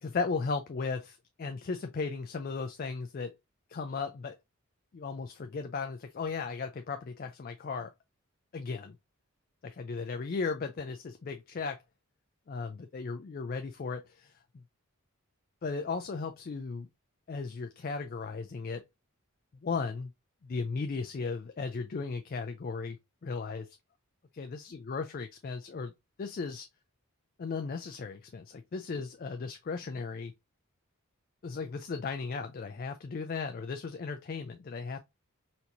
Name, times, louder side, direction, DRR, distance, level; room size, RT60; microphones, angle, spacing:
voice 1, 0.0-3.3 3.7-4.4 4.9-7.9 8.5-8.9 9.6-11.8 12.5-14.3 15.6-16.9 17.3-18.8 19.6-20.1 20.4-23.0 23.2-23.7 24.3-25.9 26.2-26.7 27.4-30.3 31.4-35.0, left 4 dB, 40° left, 0.3 m, -36 dB
4.3 x 2.9 x 2.6 m
head